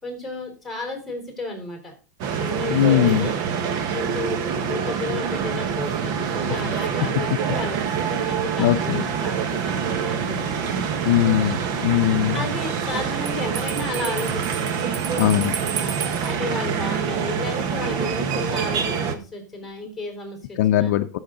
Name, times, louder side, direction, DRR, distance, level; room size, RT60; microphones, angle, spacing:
voice 1, 0.0-1.9 2.4-3.4 3.9-11.8 12.3-14.7 15.7-20.9, left 2 dB, ahead, 2 dB, 4.4 m, -33 dB
sound 1, 2.2-19.1, right 7 dB, 40° right, 1.4 m, -26 dB
voice 2, 2.7-3.3 8.6-9.1 11.1-12.4 15.1-15.6 20.6-21.2, left 12 dB, 55° left, 8 dB, 0.7 m, -20 dB
Bell, 13.2-16.3, right 8 dB, 90° right, 1.2 m, -33 dB
15.0 x 6.5 x 3.9 m, 0.33 s
hypercardioid pair, 135°, 10 cm